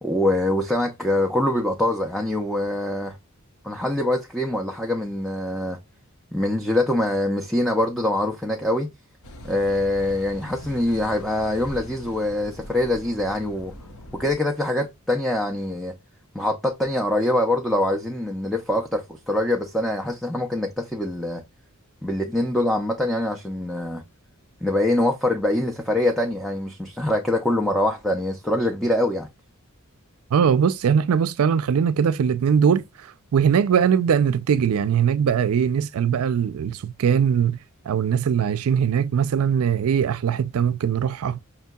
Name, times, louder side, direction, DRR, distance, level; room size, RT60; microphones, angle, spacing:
voice 1, 0.0-3.2 3.6-5.8 6.3-8.9 9.4-13.7 14.1-15.9 16.3-21.4 22.0-24.0 24.6-29.3, left 1 dB, ahead, 0.4 m, -24 dB
Car passing by / Idling / Accelerating revving vroom, 9.2-14.3, left 1 dB, 70° left, 0.8 m, -42 dB
voice 2, 30.3-37.6 37.9-41.4, right 7 dB, 70° right, 0.4 m, -21 dB
5.7 x 2.7 x 2.2 m
head